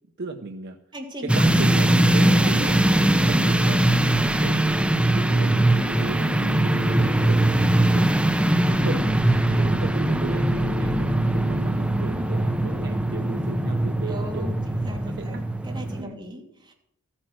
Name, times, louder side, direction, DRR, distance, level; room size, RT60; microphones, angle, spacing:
voice 1, 0.2-0.8 1.2-2.7 3.3-4.8 5.1-14.6 15.1-15.4 16.0-16.2, right 3 dB, 50° right, 5 dB, 0.8 m, -36 dB
voice 2, 0.9-1.5 2.1-4.1 8.4-9.0 9.5-9.6 14.1-15.4 15.6-16.7, equal, 20° right, -2 dB, 2.9 m, -38 dB
sound 1, 1.3-16.0, right 1 dB, 5° right, 0.6 m, -21 dB
14.0 x 8.9 x 6.2 m, 0.74 s
head